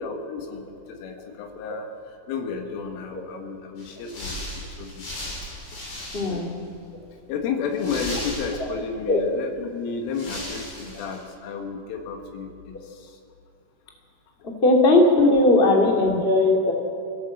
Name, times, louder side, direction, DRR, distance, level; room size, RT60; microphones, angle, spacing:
voice 1, 0.0-5.3 5.7-5.8 6.3-6.5 7.3-13.2, left 5 dB, 85° left, 3 dB, 4.4 m, -32 dB
sound 1, 3.8-6.5 6.9-7.0 7.7-8.9 9.7-9.8 10.1-11.2, left 1 dB, 60° left, 8.5 m, -36 dB
voice 2, 6.1-6.6 9.1-9.2 14.6-16.7, left 2 dB, 30° left, 0 dB, 1.0 m, -18 dB
23.0 x 16.0 x 7.7 m, 2.5 s
omnidirectional pair, 5.6 m